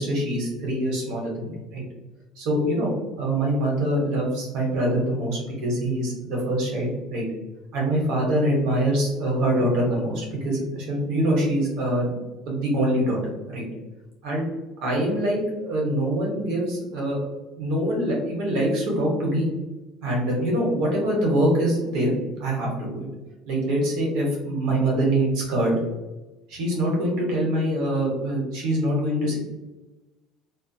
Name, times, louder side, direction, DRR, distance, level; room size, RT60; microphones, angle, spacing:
voice 1, 0.0-1.8 2.4-2.9 3.2-7.2 7.7-12.2 12.5-13.7 14.2-14.5 14.8-17.2 17.6-19.5 20.0-22.1 22.4-23.1 23.5-25.8 26.5-29.4, right 1 dB, 65° right, -2 dB, 1.0 m, -24 dB
2.4 x 2.0 x 2.7 m, 1.1 s
cardioid pair, 150°, 0 cm